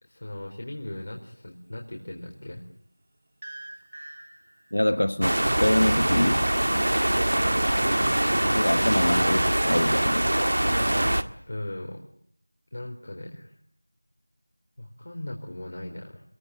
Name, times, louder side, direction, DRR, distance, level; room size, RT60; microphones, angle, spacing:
voice 1, 0.0-2.6 7.3-8.2 10.6-12.0 12.7-13.5 14.8-16.2, left 1 dB, 45° left, 4.2 m, -38 dB
sound 1, 3.4-4.9 6.9-7.6 8.0-9.8, right 2 dB, 40° right, 2.9 m, -45 dB
voice 2, 4.7-6.5 8.5-10.3, left 1 dB, 70° left, 1.4 m, -25 dB
sound 2, 5.2-11.2, right 1 dB, 65° right, 1.7 m, -23 dB
25.5 x 22.5 x 9.4 m
figure-of-eight pair, 175°, 0 cm